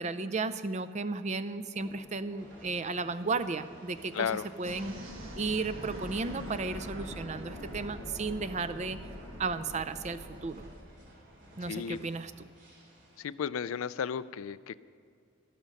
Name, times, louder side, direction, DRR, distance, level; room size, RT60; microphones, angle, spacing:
voice 1, 0.0-4.3 4.6-4.9 5.4-9.0 9.4-10.7 11.6-12.3, right 4 dB, 35° right, 13 dB, 0.5 m, -34 dB
sound 1, 1.7-10.4, left 1 dB, 10° left, 0.9 m, -53 dB
sound 2, 2.4-13.2, right 1 dB, 60° right, 3.3 m, -57 dB
voice 2, 4.1-4.5 11.7-12.0 13.2-14.8, left 7 dB, 85° left, 16 dB, 0.4 m, -34 dB
sound 3, 4.6-10.8, equal, 75° right, 1.5 m, -43 dB
13.0 x 12.5 x 5.3 m, 2.4 s
head